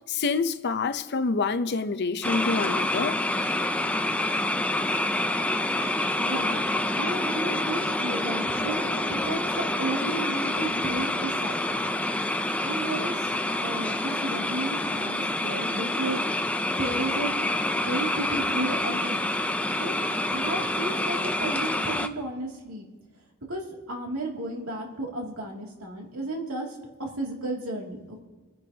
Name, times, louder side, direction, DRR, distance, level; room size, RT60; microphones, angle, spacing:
voice 1, 0.1-3.2, left 4 dB, 50° left, 0.7 m, -27 dB
sound 1, 2.2-22.1, left 1 dB, 5° left, 0.5 m, -27 dB
voice 2, 6.2-6.6 6.9-11.9 12.6-13.3 13.6-16.2 16.8-17.4 17.7-19.3 19.8-22.8 23.5-28.2, right 2 dB, 80° right, 2.5 m, -33 dB
28.0 x 9.6 x 2.8 m
head